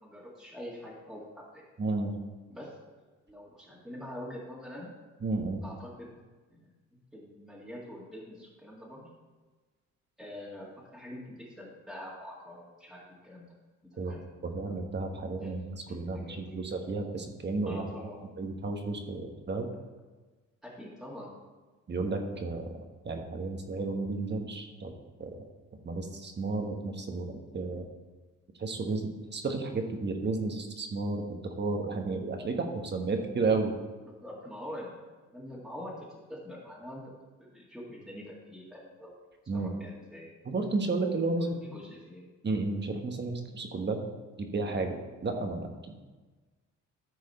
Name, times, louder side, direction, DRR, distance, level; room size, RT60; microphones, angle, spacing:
voice 1, 0.0-1.6 2.5-2.8 3.3-4.9 5.6-6.2 6.6-9.1 10.2-13.6 14.0-14.2 15.4-15.6 15.9-16.6 17.7-18.2 20.6-21.3 34.0-35.0 35.3-37.1 37.4-39.1 39.5-40.3 41.4-42.3, left 1 dB, ahead, -7 dB, 2.1 m, -45 dB
voice 2, 1.8-2.1 5.2-5.6 14.0-14.1 14.4-15.6 15.9-17.8 18.4-19.7 21.9-22.7 23.0-24.9 25.2-25.4 25.8-27.8 28.6-33.7 39.5-39.7 40.4-41.6 42.4-44.0 44.4-45.0 45.2-46.1, right 3 dB, 35° right, 4 dB, 1.4 m, -32 dB
13.5 x 4.8 x 4.3 m, 1.3 s
cardioid pair, 90°, 30 cm